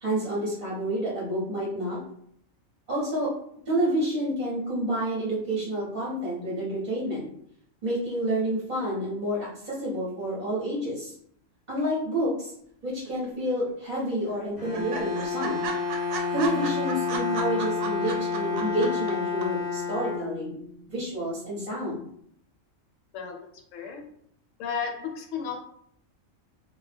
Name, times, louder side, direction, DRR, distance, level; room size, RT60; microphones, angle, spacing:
voice 1, 0.0-2.0 2.9-3.3 3.7-7.3 7.8-11.1 11.7-12.5 12.8-15.7 16.3-20.6 20.9-22.0, right 1 dB, 40° right, -6 dB, 0.7 m, -29 dB
sound 1, 13.0-13.7 14.0-14.1 14.3-14.4 14.7-19.1 19.4-19.5, right 5 dB, 90° right, 1.0 m, -35 dB
Bowed string instrument, 14.6-20.7, left 5 dB, 50° left, 0.4 m, -30 dB
voice 2, 23.7-24.0 24.6-25.6, left 6 dB, 75° left, 2 dB, 0.9 m, -33 dB
2.2 x 2.0 x 3.2 m, 0.67 s
omnidirectional pair, 1.4 m